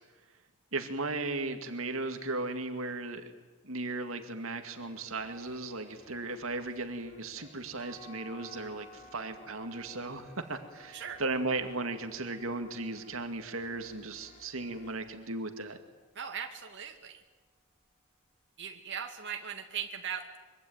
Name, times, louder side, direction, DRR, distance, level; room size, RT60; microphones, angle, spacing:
voice 1, 0.7-3.3 3.6-15.8, right 2 dB, 75° right, 6 dB, 2.3 m, -36 dB
sound 1, 4.8-16.1, left 1 dB, 35° left, 6.1 m, -58 dB
sound 2, 7.8-13.6, equal, 25° right, 4.4 m, -55 dB
voice 2, 16.2-17.2 18.6-20.4, right 8 dB, 60° right, 3 dB, 2.2 m, -39 dB
25.0 x 24.0 x 9.4 m, 1.2 s
head